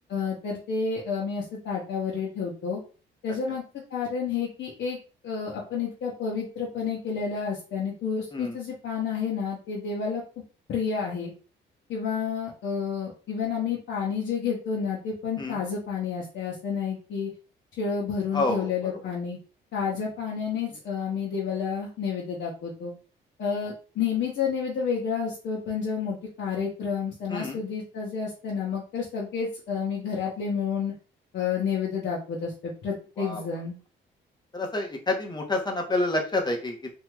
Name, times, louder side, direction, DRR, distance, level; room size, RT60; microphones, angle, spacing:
voice 1, 0.1-2.8 3.2-3.6 3.9-5.0 5.2-10.2 10.7-11.3 11.9-17.3 17.8-19.4 19.7-22.9 23.4-30.9 31.3-33.8, left 6 dB, 65° left, -5 dB, 1.0 m, -30 dB
voice 2, 18.3-18.9 27.3-27.6 33.2-33.4 34.5-36.9, left 2 dB, 20° left, 2 dB, 0.8 m, -28 dB
3.2 x 2.7 x 2.2 m, 0.36 s
cardioid pair, 90°, 20 cm